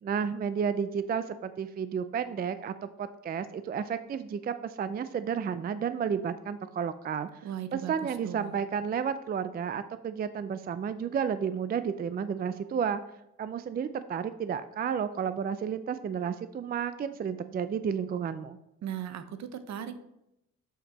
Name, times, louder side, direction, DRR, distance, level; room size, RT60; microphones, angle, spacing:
voice 1, 0.0-7.3 7.7-13.0 13.4-18.6, right 7 dB, 30° right, 12 dB, 0.4 m, -32 dB
voice 2, 7.4-8.6 18.8-20.0, right 9 dB, 60° right, 11 dB, 0.8 m, -38 dB
7.3 x 5.7 x 4.1 m, 0.85 s
cardioid pair, 90°, 30 cm